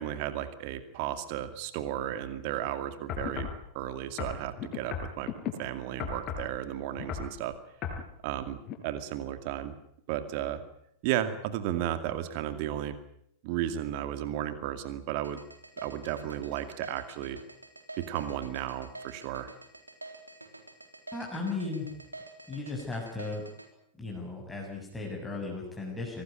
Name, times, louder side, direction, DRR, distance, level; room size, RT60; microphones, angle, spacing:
voice 1, 0.0-3.5 3.7-5.3 5.6-7.5 8.2-8.6 8.8-9.7 10.1-10.6 11.0-12.9 13.4-15.4 15.8-17.4 18.0-19.5, right 11 dB, 45° right, 10 dB, 2.3 m, -34 dB
sound 1, 3.1-3.6 4.2-5.5 6.0-6.5 7.0-7.3 7.8-8.0 8.7-8.8, left 7 dB, 30° left, 6.4 m, -35 dB
sound 2, 15.2-23.7, right 2 dB, 85° right, 3.8 m, -47 dB
voice 2, 21.1-21.9 22.5-23.4 24.0-26.2, left 3 dB, 10° left, -2 dB, 6.9 m, -36 dB
25.0 x 18.5 x 9.3 m, 0.71 s
figure-of-eight pair, 90°, 0 cm